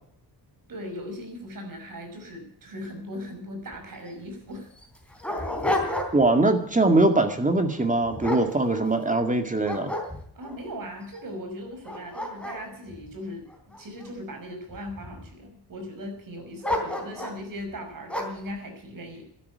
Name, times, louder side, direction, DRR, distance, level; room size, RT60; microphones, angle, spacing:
voice 1, 0.7-4.7 10.3-13.5 13.8-19.2, equal, 55° right, 5 dB, 5.8 m, -38 dB
Dog, 3.7-3.8 4.1-4.2 4.8-6.4 6.8-7.1 7.7-9.2 9.6-10.6 11.2-11.3 11.7-14.1 14.7-15.3 16.6-17.4 18.1-18.5, left 1 dB, 5° left, 3.6 m, -31 dB
voice 2, 6.1-9.9, right 2 dB, 20° right, 7 dB, 2.1 m, -22 dB
12.5 x 11.5 x 9.5 m, 0.66 s
cardioid pair, 100°, 40 cm